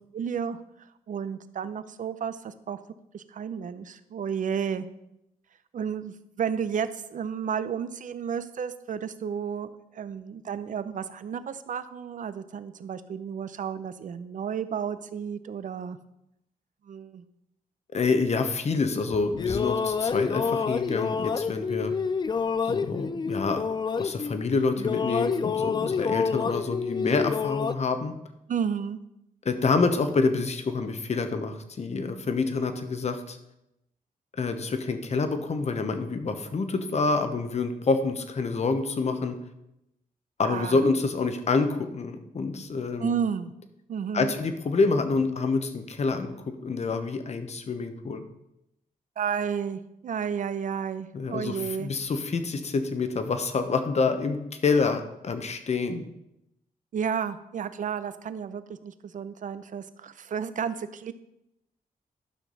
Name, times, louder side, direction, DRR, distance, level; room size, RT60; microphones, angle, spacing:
voice 1, 0.1-0.6 1.1-2.8 3.1-4.9 5.7-16.0 16.8-17.2 28.5-29.0 40.4-40.9 43.0-43.5 43.9-44.3 49.2-51.9 56.9-61.1, right 7 dB, 60° right, 13 dB, 0.6 m, -32 dB
voice 2, 17.9-21.9 22.6-23.6 24.0-28.1 29.4-33.4 34.4-39.4 40.4-43.1 44.1-48.2 51.1-56.0, left 4 dB, 45° left, 8 dB, 1.0 m, -27 dB
sound 1, 19.1-24.5 24.8-27.7, left 5 dB, 30° left, 0.3 m, -28 dB
11.5 x 5.9 x 4.0 m, 0.84 s
cardioid pair, 95°, 15 cm